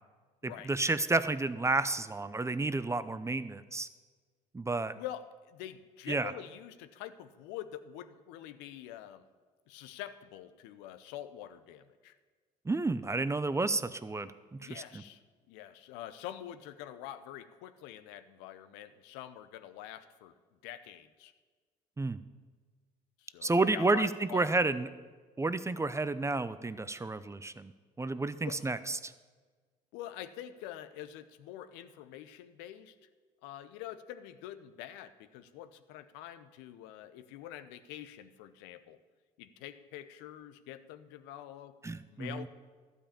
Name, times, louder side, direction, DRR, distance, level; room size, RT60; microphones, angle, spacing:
voice 1, 0.4-3.9 4.5-4.9 6.1-6.3 12.7-14.8 22.0-22.2 23.4-24.9 25.4-27.7 28.0-29.1 41.8-42.5, right 3 dB, 15° right, 14 dB, 0.6 m, -31 dB
voice 2, 4.9-9.2 9.7-12.1 14.6-15.2 15.5-20.3 20.6-21.3 23.2-24.5 28.4-28.7 29.9-33.0 33.4-39.0 39.4-41.8 42.1-42.5, left 12 dB, 75° left, 11 dB, 0.7 m, -46 dB
12.5 x 5.4 x 8.6 m, 1.4 s
hypercardioid pair, 60°, 18 cm